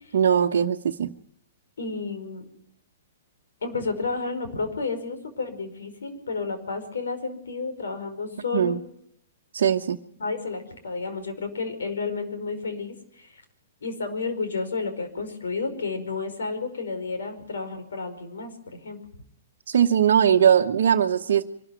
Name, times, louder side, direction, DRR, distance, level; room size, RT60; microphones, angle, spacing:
voice 1, 0.1-1.1 8.5-8.8 9.5-10.0 19.7-21.5, right 8 dB, 65° right, 0 dB, 1.0 m, -20 dB
voice 2, 1.8-2.4 3.6-8.8 10.2-13.4 13.8-19.0, left 4 dB, 75° left, 7 dB, 5.1 m, -31 dB
24.0 x 13.0 x 9.3 m, 0.70 s
hypercardioid pair, 120°, 0 cm